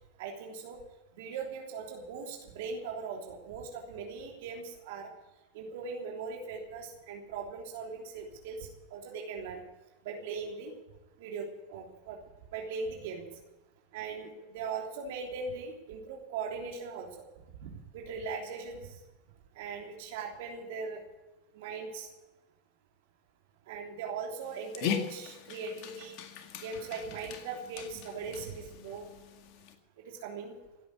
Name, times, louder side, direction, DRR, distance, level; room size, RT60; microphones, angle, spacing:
voice 1, 0.2-0.8 1.1-5.1 5.5-9.6 10.0-10.8 11.2-12.2 12.5-13.2 13.9-17.7 17.9-19.0 19.5-21.0 21.5-22.1 23.7-26.2 26.6-29.1 30.0-30.5, right 5 dB, 70° right, 0 dB, 3.2 m, -40 dB
Dog, 24.4-29.8, left 8 dB, 55° left, 1.9 m, -40 dB
16.5 x 8.6 x 9.6 m, 1.1 s
hypercardioid pair, 95°, 0 cm